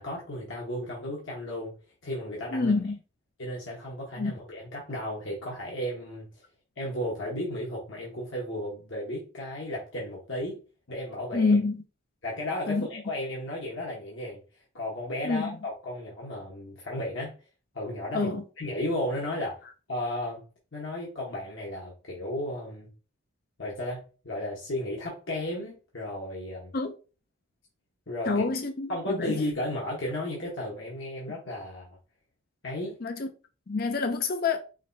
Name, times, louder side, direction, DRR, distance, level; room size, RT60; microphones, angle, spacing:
voice 1, 0.0-1.7 2.0-2.7 3.4-6.3 6.8-10.6 10.9-11.6 12.2-14.4 14.7-17.3 17.7-20.4 20.7-22.9 23.6-26.7 28.1-28.5 28.9-31.9 32.6-33.0, left 1 dB, 65° left, 1.2 m, -34 dB
voice 2, 2.5-3.0 4.2-4.3 11.3-11.8 12.7-12.9 15.2-15.6 18.1-18.4 26.7-26.9 28.3-29.4 33.0-33.3 33.7-34.6, left 3 dB, 45° left, 0.5 m, -27 dB
5.0 x 3.3 x 2.7 m
head